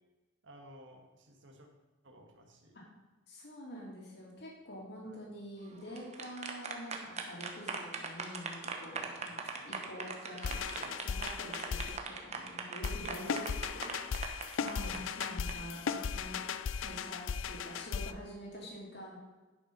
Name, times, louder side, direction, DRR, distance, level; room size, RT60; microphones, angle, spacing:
voice 1, 0.4-1.7 2.0-2.8 5.0-5.3 9.2-9.3 13.2-13.4 14.8-15.3, equal, 65° right, 3 dB, 1.7 m, -55 dB
voice 2, 3.3-16.4 16.8-19.2, equal, 55° left, -3 dB, 2.8 m, -47 dB
sound 1, 5.8-15.5, right 5 dB, 30° right, 1.0 m, -40 dB
sound 2, 10.4-12.0 12.8-18.1, left 6 dB, 70° left, 0.4 m, -37 dB
10.5 x 6.1 x 5.5 m, 1.2 s
head